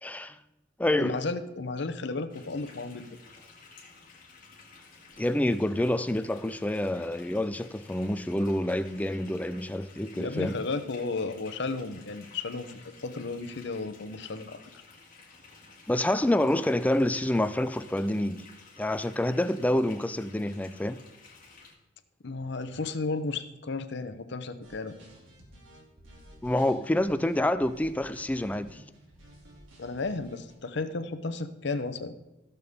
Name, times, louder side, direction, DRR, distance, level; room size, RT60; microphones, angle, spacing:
voice 1, 0.0-0.4 0.8-1.2 5.2-10.6 15.9-18.5 18.8-21.0 26.4-28.8, left 1 dB, 10° left, 0.4 m, -27 dB
voice 2, 1.0-3.1 10.1-12.7 13.0-14.6 22.2-25.0 29.8-32.1, left 3 dB, 60° left, 0.8 m, -33 dB
sound 1, 2.3-21.7, left 4 dB, 45° left, 2.4 m, -53 dB
sound 2, 24.6-30.5, equal, 90° right, 2.6 m, -53 dB
16.0 x 6.9 x 3.6 m
head